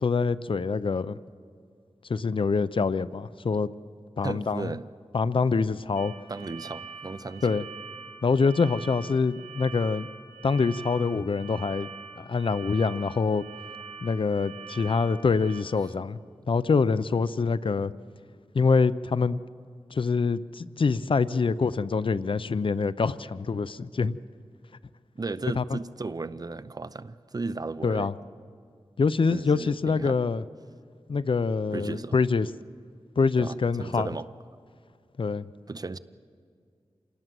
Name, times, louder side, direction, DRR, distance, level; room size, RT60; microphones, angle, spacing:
voice 1, 0.0-1.2 2.1-3.7 4.2-4.7 5.1-6.1 7.4-7.6 8.2-10.1 10.4-11.9 12.2-13.4 14.0-16.2 16.5-17.9 18.5-19.4 19.9-24.2 25.5-25.8 27.8-28.1 29.0-30.4 31.1-32.5 33.2-34.1 35.2-35.5, left 4 dB, 55° left, 16 dB, 0.6 m, -25 dB
voice 2, 4.2-4.9 6.3-7.6 25.2-28.1 29.3-30.2 31.7-32.1 33.4-34.3 35.7-36.0, right 3 dB, 40° right, 14 dB, 0.7 m, -35 dB
sound 1, 6.0-15.6, right 5 dB, 70° right, 2.1 m, -44 dB
27.5 x 19.0 x 7.6 m, 2.2 s
wide cardioid pair, 85°, 10 cm